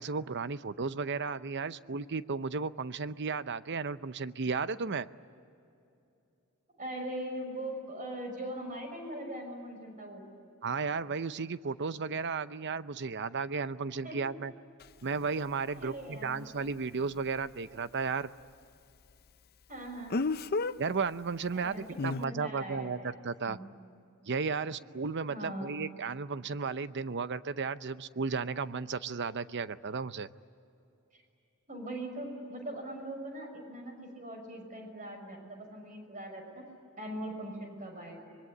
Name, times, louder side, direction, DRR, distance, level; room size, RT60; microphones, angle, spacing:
voice 1, 0.0-5.1 10.6-14.5 15.0-18.3 20.8-23.6 24.3-30.3, right 5 dB, 50° right, 14 dB, 0.7 m, -34 dB
voice 2, 6.8-10.2 14.0-14.2 15.7-16.5 19.7-20.2 21.5-23.2 23.4-23.6 25.2-25.8 31.1-31.2 31.7-36.6 37.0-38.2, right 1 dB, 35° right, 4 dB, 6.3 m, -41 dB
Speech, 14.8-14.9 20.1-20.7 22.0-22.2, left 3 dB, 45° left, 0.6 m, -30 dB
25.0 x 22.5 x 9.8 m, 2.7 s
head